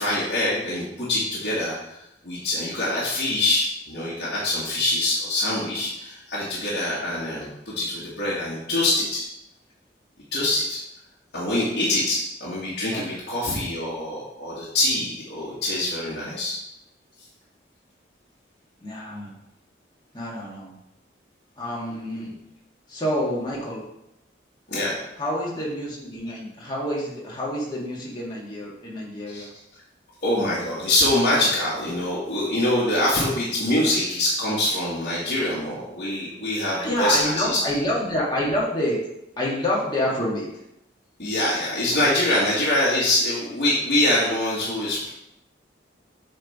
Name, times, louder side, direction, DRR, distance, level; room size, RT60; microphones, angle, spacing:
voice 1, 0.0-2.0 2.2-9.2 10.3-10.8 11.3-16.6 24.7-25.0 29.3-29.4 30.2-37.6 41.2-45.1, left 1 dB, 65° left, -9 dB, 1.7 m, -24 dB
voice 2, 18.8-19.4 20.1-20.7 21.6-22.3 22.9-23.8 25.2-29.5 36.7-39.0 39.4-40.5, left 1 dB, 25° left, -5 dB, 1.8 m, -27 dB
8.7 x 3.3 x 4.2 m, 0.84 s
head